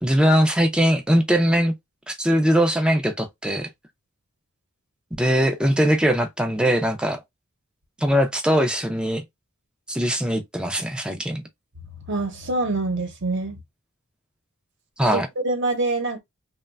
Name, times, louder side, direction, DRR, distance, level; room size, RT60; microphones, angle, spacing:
voice 1, 0.0-1.7 2.1-3.7 5.2-7.2 8.0-9.2 9.9-11.4 15.0-15.3, equal, 5° right, 0.4 m, -21 dB
voice 2, 12.1-13.6 15.0-16.2, right 2 dB, 55° right, 0.8 m, -25 dB
3.0 x 2.2 x 2.3 m
head